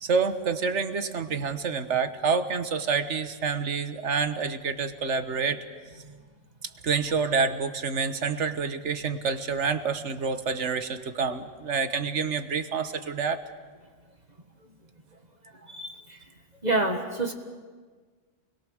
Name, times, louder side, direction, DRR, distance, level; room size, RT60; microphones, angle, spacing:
voice 1, 0.0-5.6 6.8-13.4, right 5 dB, 70° right, 10 dB, 1.5 m, -28 dB
voice 2, 16.6-17.3, right 2 dB, 35° right, 4 dB, 1.7 m, -27 dB
28.5 x 21.5 x 6.5 m, 1.5 s
omnidirectional pair, 1.2 m